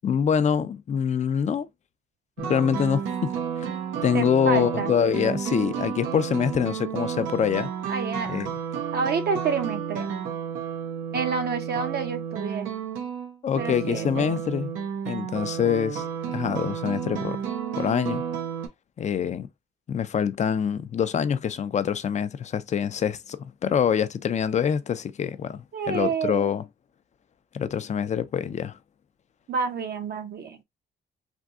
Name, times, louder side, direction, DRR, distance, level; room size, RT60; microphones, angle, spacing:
voice 1, 0.0-1.7 2.4-3.3 4.0-7.7 8.3-8.5 13.4-14.7 15.1-17.4 17.8-18.2 19.0-19.5 19.9-26.6 27.5-28.7, left 8 dB, 35° left, 0.4 m, -25 dB
sound 1, 2.4-18.7, right 7 dB, 90° right, 0.8 m, -31 dB
voice 2, 4.1-4.9 7.9-8.4 8.9-10.1 11.1-12.7 13.6-14.4 25.7-26.5 29.5-30.6, right 5 dB, 55° right, 0.7 m, -29 dB
3.4 x 2.6 x 2.4 m
cardioid pair, 90°, 20 cm